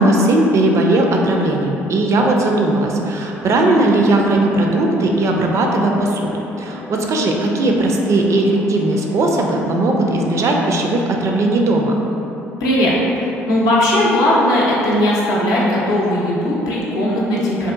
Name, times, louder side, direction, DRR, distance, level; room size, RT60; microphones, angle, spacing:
voice 1, 0.0-6.3 6.6-11.9, right 2 dB, 50° right, 1 dB, 0.3 m, -17 dB
sound 1, 3.3-10.9, left 1 dB, 20° left, 0.6 m, -36 dB
voice 2, 12.6-17.7, left 1 dB, 70° left, -5 dB, 0.5 m, -17 dB
2.7 x 2.4 x 2.3 m, 2.9 s
hypercardioid pair, 55°, 6 cm